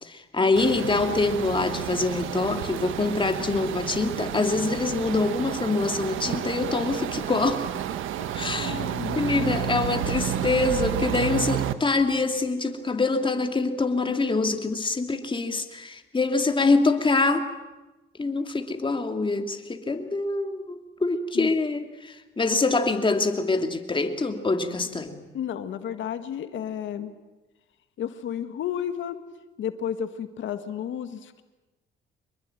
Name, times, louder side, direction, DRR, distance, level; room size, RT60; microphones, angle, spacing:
voice 1, 0.0-7.7 8.3-8.8 9.1-17.5 18.2-25.2, left 3 dB, 25° left, 6 dB, 2.8 m, -25 dB
sound 1, 0.6-11.7, right 10 dB, 85° right, 1.4 m, -31 dB
voice 2, 8.2-9.6 21.3-21.5 25.3-27.1 28.0-29.2 29.6-31.4, left 9 dB, 75° left, 9 dB, 1.7 m, -32 dB
25.5 x 22.0 x 9.1 m, 1.1 s
cardioid pair, 90°, 20 cm